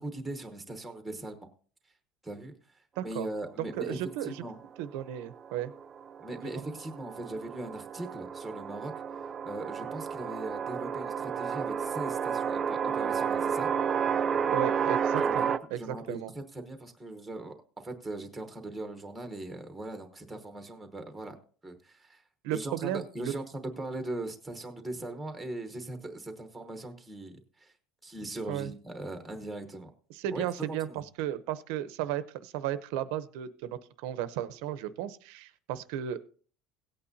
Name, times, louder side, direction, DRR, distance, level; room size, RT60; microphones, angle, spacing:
voice 1, 0.0-1.5 2.2-4.6 6.2-8.9 9.4-13.7 15.1-21.4 21.6-22.2 22.5-27.7 28.0-29.9 30.3-30.5 30.9-31.0, right 2 dB, 5° right, 6 dB, 1.0 m, -40 dB
voice 2, 3.0-3.3 3.8-4.4 4.8-5.7 6.5-6.6 14.5-16.3 22.4-23.3 28.5-28.7 30.1-36.2, right 11 dB, 70° right, 14 dB, 0.7 m, -34 dB
sound 1, 5.4-15.6, right 7 dB, 20° right, 0.4 m, -31 dB
17.5 x 8.6 x 2.7 m, 0.43 s
cardioid pair, 180°, 0 cm